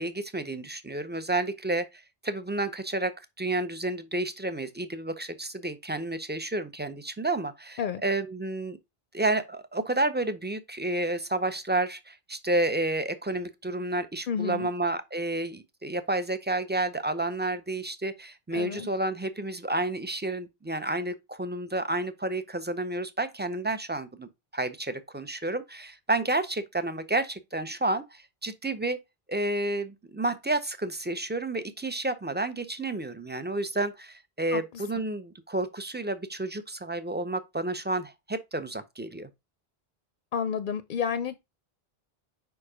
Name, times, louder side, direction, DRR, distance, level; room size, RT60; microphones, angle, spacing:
voice 1, 0.0-8.8 9.1-29.0 29.3-39.3, right 2 dB, 15° right, 0.4 m, -30 dB
voice 2, 14.3-14.7 18.5-18.9 34.5-35.0 40.3-41.4, left 7 dB, 60° left, 0.6 m, -31 dB
5.1 x 4.7 x 4.9 m
omnidirectional pair, 1.0 m